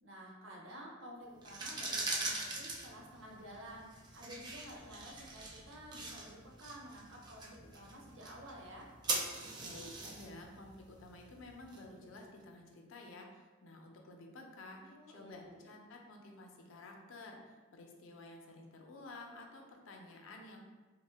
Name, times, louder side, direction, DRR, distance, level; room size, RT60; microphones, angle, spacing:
voice 1, 0.0-8.9 14.4-14.5 14.7-15.7, equal, 65° right, -2 dB, 0.6 m, -52 dB
sound 1, 1.4-12.2, right 3 dB, 20° right, 0.3 m, -42 dB
voice 2, 9.6-20.6, left 2 dB, 70° left, 2 dB, 0.4 m, -52 dB
2.7 x 2.1 x 3.2 m, 1.3 s
head